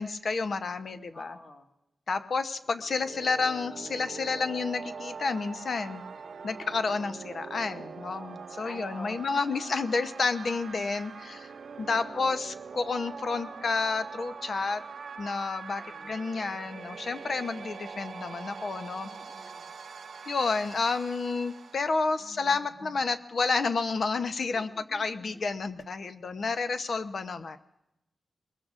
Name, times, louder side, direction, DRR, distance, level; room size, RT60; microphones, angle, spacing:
voice 1, 0.0-1.4 2.1-6.0 6.4-11.5 11.8-14.8 15.2-19.1 20.3-27.6, left 4 dB, 55° left, 10 dB, 0.8 m, -30 dB
voice 2, 1.1-1.6 8.6-9.3 12.0-12.4 15.8-16.6 19.1-19.6 22.2-22.9 24.4-25.4, left 2 dB, 35° left, 2 dB, 1.9 m, -49 dB
sound 1, 2.7-22.5, right 5 dB, 60° right, 0.6 m, -43 dB
22.5 x 21.0 x 2.5 m, 0.88 s
wide cardioid pair, 120°, 0 cm